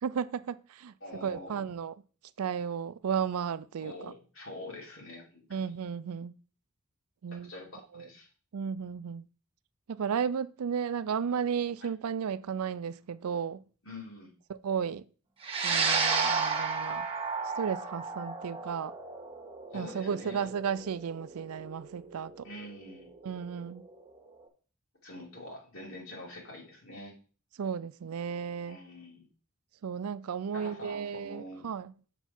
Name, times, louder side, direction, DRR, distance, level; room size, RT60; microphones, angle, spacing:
voice 1, 0.0-0.9 1.2-1.9 2.4-4.1 5.5-6.3 7.2-7.5 7.9-8.1 8.5-9.3 9.9-13.6 14.5-15.0 15.6-17.1 17.6-18.9 19.7-22.5 23.2-23.8 27.6-28.8 29.8-31.9, right 7 dB, 90° right, 0.4 m, -34 dB
voice 2, 1.0-1.6 3.8-5.6 7.3-8.3 11.8-11.9 13.8-14.3 19.7-20.5 22.4-23.1 25.0-27.1 28.7-29.3 30.5-31.7, left 1 dB, 65° left, 2.8 m, -45 dB
sound 1, 15.4-24.0, right 5 dB, 25° right, 1.4 m, -33 dB
6.9 x 4.5 x 5.9 m
head